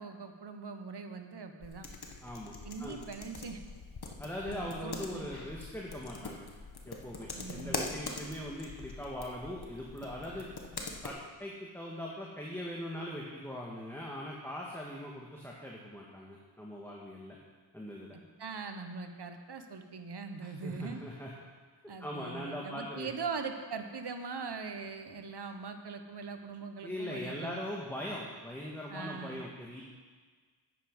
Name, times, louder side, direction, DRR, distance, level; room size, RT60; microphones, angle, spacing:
voice 1, 0.0-1.9 2.6-3.6 4.4-5.3 7.3-7.8 18.1-21.0 21.9-27.6 28.9-29.4, right 5 dB, 55° right, 6 dB, 1.1 m, -41 dB
sound 1, 1.6-11.1, left 3 dB, 55° left, 1.4 m, -43 dB
voice 2, 2.2-3.0 4.2-6.5 6.9-10.5 11.0-17.4 17.7-18.2 20.4-21.3 22.0-23.1 26.8-29.8, left 1 dB, 5° left, -3 dB, 1.6 m, -41 dB
9.9 x 9.3 x 5.3 m, 1.5 s
cardioid pair, 55°, 46 cm